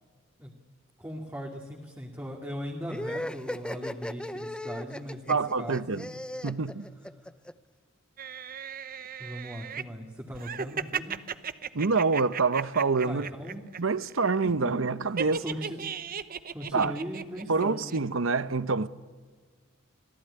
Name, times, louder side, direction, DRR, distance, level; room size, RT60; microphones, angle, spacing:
voice 1, 1.0-6.1 9.2-11.2 13.0-13.7 14.4-14.7 15.4-15.9 16.5-18.0, equal, 10° right, 2.3 m, -39 dB
sound 1, 2.9-7.5, left 1 dB, 5° left, 0.6 m, -37 dB
voice 2, 5.3-6.1 6.4-6.8 11.7-13.3 13.8-15.4 16.7-17.0 17.5-18.9, right 4 dB, 70° right, 0.9 m, -26 dB
sound 2, 8.2-9.8 10.3-13.8 14.0-14.5 15.2-17.6 17.9-18.0, right 7 dB, 45° right, 0.9 m, -36 dB
26.5 x 17.0 x 9.9 m
head